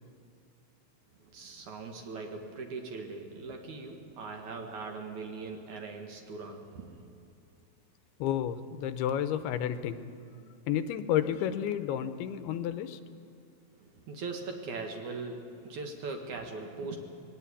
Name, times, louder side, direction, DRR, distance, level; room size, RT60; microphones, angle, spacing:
voice 1, 1.2-7.1 13.8-17.0, right 4 dB, 60° right, 3 dB, 2.6 m, -40 dB
voice 2, 8.2-10.1 10.7-13.0, left 10 dB, 90° left, 11 dB, 2.9 m, -31 dB
20.5 x 17.5 x 8.4 m, 2.7 s
omnidirectional pair, 4.5 m